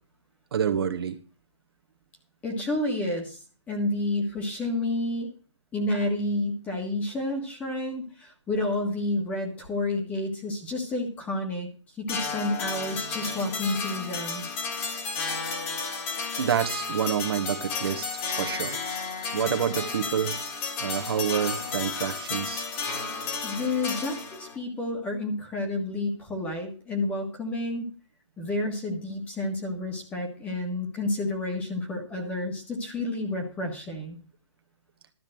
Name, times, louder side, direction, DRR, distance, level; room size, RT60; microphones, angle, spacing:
voice 1, 0.5-1.1 16.4-18.1 18.3-18.8 19.3-20.4 20.8-22.6, right 8 dB, 55° right, 7 dB, 1.4 m, -27 dB
voice 2, 2.4-3.4 3.7-5.3 5.7-11.7 12.0-14.5 23.4-27.8 28.4-34.2, left 2 dB, 10° left, 3 dB, 1.6 m, -30 dB
sound 1, 12.1-24.6, left 4 dB, 25° left, 1.9 m, -33 dB
12.5 x 5.2 x 7.8 m, 0.37 s
hypercardioid pair, 170°, 16 cm